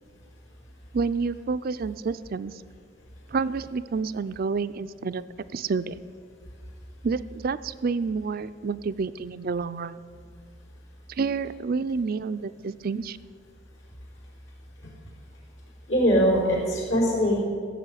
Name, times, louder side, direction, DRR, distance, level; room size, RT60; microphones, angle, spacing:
voice 1, 0.9-2.5 3.3-5.2 5.5-6.0 7.0-10.0 11.1-13.2, right 4 dB, 50° right, 13 dB, 0.4 m, -29 dB
voice 2, 15.9-17.4, equal, 75° left, -2 dB, 4.7 m, -22 dB
15.5 x 7.0 x 9.1 m, 2.1 s
head